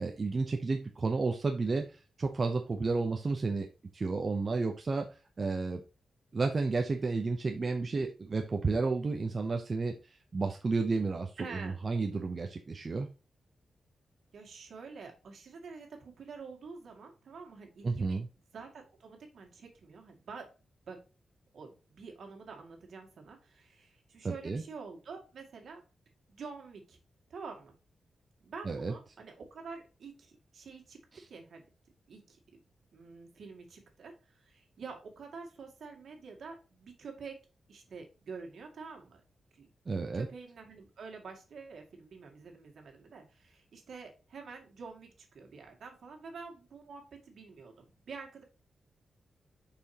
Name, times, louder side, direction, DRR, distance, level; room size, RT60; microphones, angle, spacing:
voice 1, 0.0-3.7 3.9-5.8 6.3-13.1 17.8-18.3 24.2-24.6 28.7-28.9 31.1-31.3 39.9-40.3, right 3 dB, 30° right, 4 dB, 0.7 m, -32 dB
voice 2, 11.4-11.8 14.3-18.2 18.5-20.5 20.9-21.0 21.5-25.8 26.3-27.0 27.3-27.7 28.4-31.6 32.1-32.6 32.9-37.4 37.7-39.2 39.5-39.7 40.1-48.4, right 5 dB, 60° right, 2 dB, 2.3 m, -47 dB
6.9 x 5.8 x 2.9 m, 0.32 s
wide cardioid pair, 170°, 0 cm